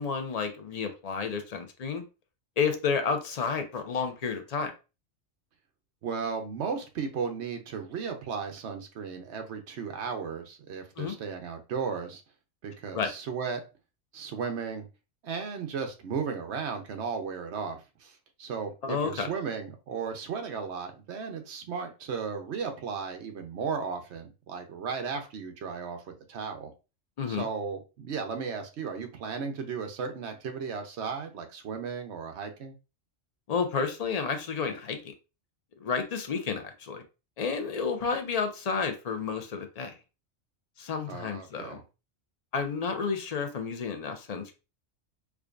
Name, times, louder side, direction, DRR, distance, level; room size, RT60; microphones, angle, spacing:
voice 1, 0.0-2.0 2.6-4.7 11.0-11.1 12.9-13.1 18.8-19.3 27.2-27.5 33.5-35.1 35.8-37.0 37.4-39.9 40.8-41.8 42.5-44.6, left 5 dB, 50° left, 6 dB, 0.4 m, -31 dB
voice 2, 6.0-12.2 12.6-13.6 14.1-14.9 15.2-26.7 27.3-32.7 41.1-41.8, right 5 dB, 65° right, 5 dB, 1.0 m, -35 dB
4.7 x 2.3 x 2.5 m, 0.30 s
omnidirectional pair, 1.3 m